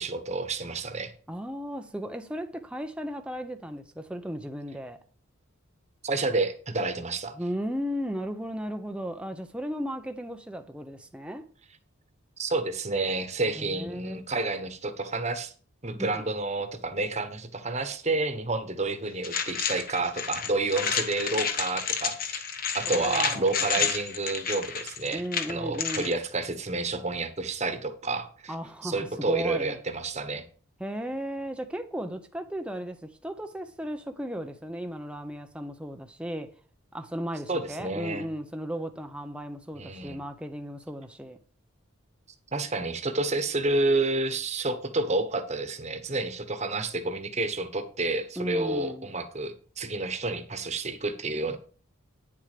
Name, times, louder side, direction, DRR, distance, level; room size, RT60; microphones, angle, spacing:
voice 1, 0.0-1.1 6.0-7.4 12.4-15.5 15.8-22.5 22.7-25.2 25.5-28.5 28.8-30.4 37.5-38.2 39.8-40.2 42.5-51.6, right 3 dB, 30° right, 1.2 m, -29 dB
voice 2, 1.3-5.0 7.4-11.5 13.6-14.2 15.9-16.2 22.9-23.5 25.1-26.2 28.5-29.8 30.8-36.5 36.9-41.4 48.4-49.1, equal, 5° right, 0.7 m, -35 dB
sound 1, 19.2-26.1, left 6 dB, 45° left, 1.3 m, -30 dB
9.7 x 7.4 x 5.1 m
head